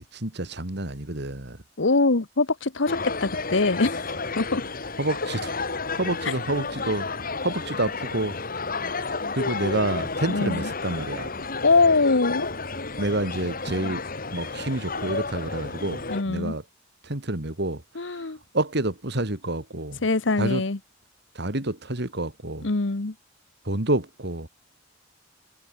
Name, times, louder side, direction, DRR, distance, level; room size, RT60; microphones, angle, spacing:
voice 1, 0.0-1.6 5.0-5.5 5.9-7.1 7.4-8.4 9.3-11.3 13.0-14.0 14.3-16.6 17.0-18.3 18.5-20.0 20.4-20.6 21.3-22.7 23.6-24.5, right 2 dB, 60° right, 2.9 m, -28 dB
voice 2, 1.8-4.1 4.4-4.6 10.3-10.7 11.6-12.5 16.1-16.5 17.9-18.4 20.0-20.8 22.6-23.1, left 3 dB, 70° left, 1.2 m, -23 dB
sound 1, 2.9-16.2, left 3 dB, 50° left, 3.9 m, -31 dB
head